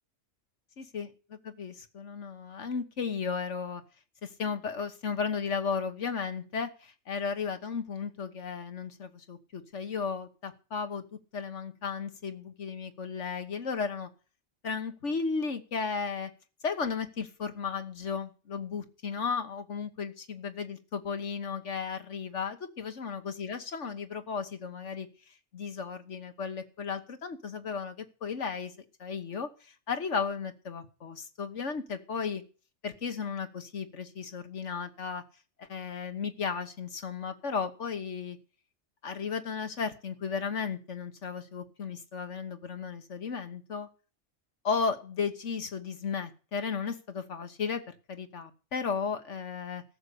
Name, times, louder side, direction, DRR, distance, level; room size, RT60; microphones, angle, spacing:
voice 1, 0.8-3.8 4.2-11.0 11.3-14.1 14.6-16.3 16.6-25.1 25.5-28.7 29.0-29.5 29.9-32.4 32.8-35.2 35.6-38.4 39.0-43.9 44.6-49.8, left 5 dB, 70° left, 8 dB, 1.7 m, -34 dB
14.0 x 6.7 x 8.4 m, 0.37 s
omnidirectional pair, 1.3 m